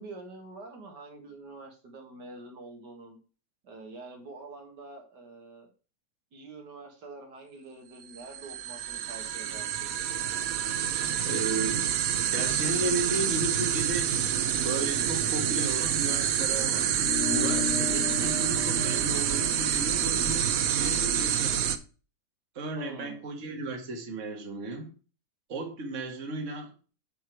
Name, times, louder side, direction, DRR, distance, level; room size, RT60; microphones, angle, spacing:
voice 1, 0.0-3.2 3.6-5.7 6.3-9.9 18.0-18.4 22.8-23.2, right 2 dB, 85° right, 2.3 m, -46 dB
sound 1, 8.1-21.8, right 9 dB, 65° right, 1.1 m, -27 dB
voice 2, 11.3-12.0 12.3-20.5 20.8-21.7 22.6-24.9 25.5-26.7, right 2 dB, 50° right, 1.8 m, -34 dB
sound 2, 17.0-21.8, left 7 dB, 50° left, 1.8 m, -37 dB
8.0 x 4.9 x 4.5 m
omnidirectional pair, 1.8 m